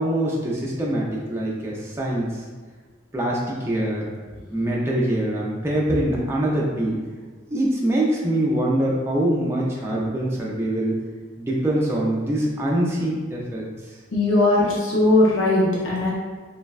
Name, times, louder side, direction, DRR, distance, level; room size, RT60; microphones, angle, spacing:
voice 1, 0.0-2.3 3.1-4.0 4.5-7.0 7.5-11.0 11.4-13.7, right 1 dB, 15° right, -4 dB, 0.4 m, -24 dB
voice 2, 14.1-16.1, left 2 dB, 85° left, -5 dB, 0.6 m, -19 dB
3.3 x 2.1 x 2.3 m, 1.4 s
head